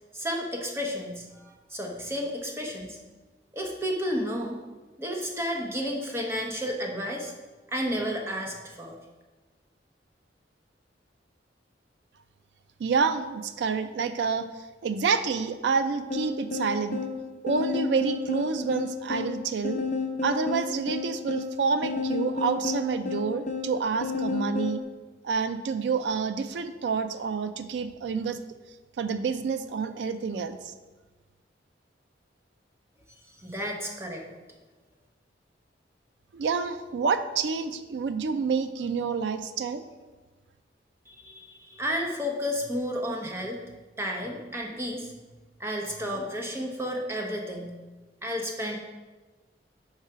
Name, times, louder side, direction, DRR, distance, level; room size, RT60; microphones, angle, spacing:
voice 1, 0.1-3.0 3.5-4.6 5.0-7.3 7.7-9.0 33.4-34.2 41.1-43.6 44.0-45.1 45.6-47.7 48.2-48.8, equal, 15° right, 1 dB, 0.8 m, -32 dB
voice 2, 12.8-14.5 14.8-17.0 17.4-19.8 20.2-24.8 25.2-28.4 29.0-30.7 36.3-39.8, right 5 dB, 70° right, 10 dB, 0.4 m, -28 dB
sound 1, 16.1-24.8, left 4 dB, 40° left, 0.7 m, -31 dB
4.8 x 4.7 x 5.6 m, 1.3 s
head